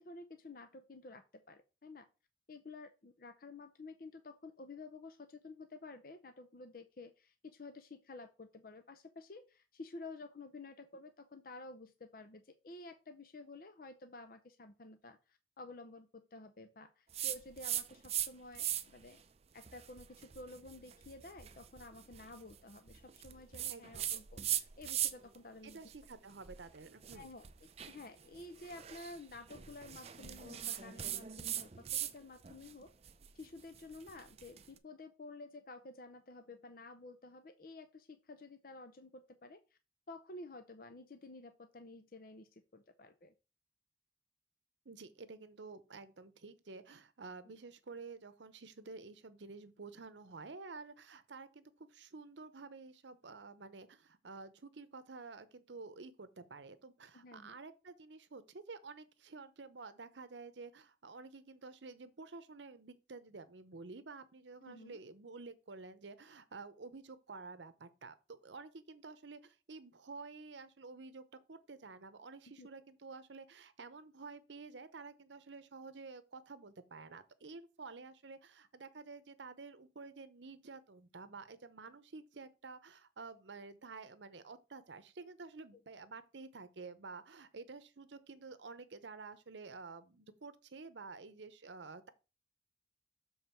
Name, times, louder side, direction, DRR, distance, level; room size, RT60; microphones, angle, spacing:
voice 1, 0.0-2.1 2.5-19.2 19.5-25.8 27.1-32.9 33.3-39.8 40.1-43.3 47.5-47.6 57.1-57.6 64.6-65.0 72.6-72.7, left 2 dB, 50° left, 0.6 m, -52 dB
sound 1, 17.1-18.3 18.5-19.1 19.6-25.4 25.7-32.1 32.4-34.6, right 11 dB, 35° right, 0.5 m, -40 dB
voice 2, 23.7-24.2 25.6-27.3 44.8-92.1, right 4 dB, 80° right, 0.8 m, -51 dB
7.2 x 4.0 x 5.8 m
head